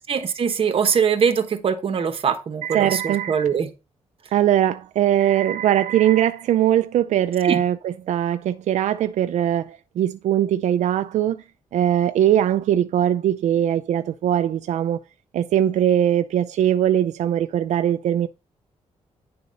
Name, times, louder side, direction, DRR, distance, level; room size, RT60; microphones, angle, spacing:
voice 1, 0.1-3.7 7.4-7.6, right 7 dB, 50° right, 1.1 m, -22 dB
voice 2, 2.6-3.4 4.3-11.4 11.7-15.0 15.3-18.3, right 11 dB, 85° right, 0.4 m, -21 dB
9.5 x 4.0 x 5.3 m
wide cardioid pair, 145°, 12 cm